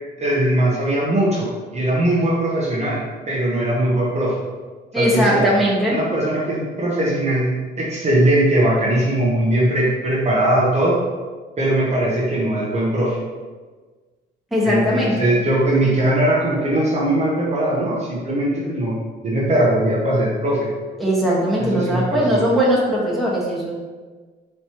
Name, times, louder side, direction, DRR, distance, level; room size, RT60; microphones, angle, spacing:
voice 1, 0.2-4.4 4.9-5.5 5.9-11.0 11.6-13.2 14.6-18.9 19.2-20.7 21.7-22.4, right 1 dB, 35° right, -6 dB, 0.9 m, -20 dB
voice 2, 4.9-6.0 14.5-15.3 21.0-23.7, equal, ahead, -7 dB, 1.4 m, -19 dB
4.2 x 3.3 x 3.0 m, 1.4 s
cardioid pair, 90°, 20 cm